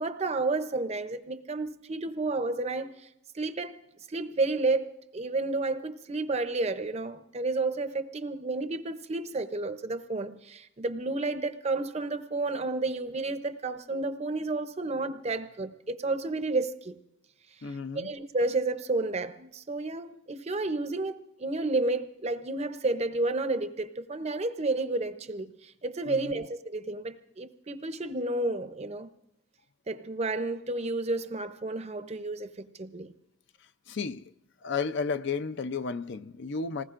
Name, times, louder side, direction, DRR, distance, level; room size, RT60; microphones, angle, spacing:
voice 1, 0.0-3.1 3.3-3.8 4.1-17.0 17.6-29.1 29.9-33.1, right 2 dB, 30° right, 0.6 m, -31 dB
voice 2, 17.6-18.2 26.1-26.5 33.9-34.2 34.6-36.8, left 5 dB, 55° left, 0.5 m, -33 dB
26.5 x 19.5 x 2.5 m
head